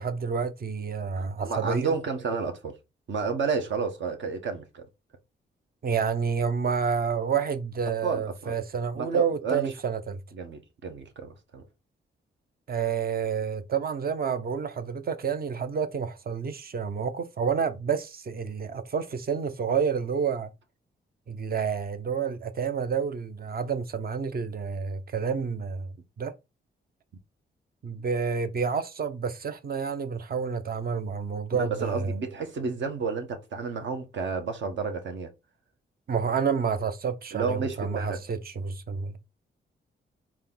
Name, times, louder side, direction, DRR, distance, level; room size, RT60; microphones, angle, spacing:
voice 1, 0.0-1.9 5.8-10.2 12.7-20.5 21.3-25.9 26.2-26.3 27.8-32.2 36.1-39.2, right 6 dB, 50° right, 0.8 m, -29 dB
voice 2, 1.1-2.7 3.1-4.9 8.0-8.6 8.9-9.7 10.3-11.6 31.5-35.3 37.3-38.2, right 5 dB, 70° right, 1.3 m, -31 dB
4.3 x 3.0 x 3.7 m
cardioid pair, 75°, 20 cm